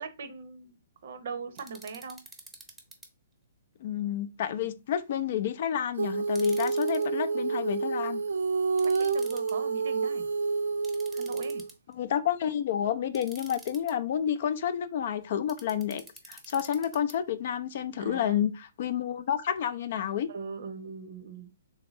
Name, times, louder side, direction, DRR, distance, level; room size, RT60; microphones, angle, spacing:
voice 1, 0.0-2.2 4.6-4.7 8.8-10.3 11.1-11.6 18.0-18.4 20.3-21.7, right 5 dB, 65° right, 0.7 m, -41 dB
sound 1, 1.6-3.1 6.2-7.0 8.8-9.5 10.8-11.9 13.1-13.9 15.5-17.1, right 2 dB, 10° right, 0.7 m, -48 dB
voice 2, 3.8-8.2 11.9-20.3, left 9 dB, 55° left, 0.4 m, -30 dB
Female singing, 6.0-11.7, right 4 dB, 80° right, 0.3 m, -29 dB
3.4 x 2.7 x 3.0 m
hypercardioid pair, 140°, 0 cm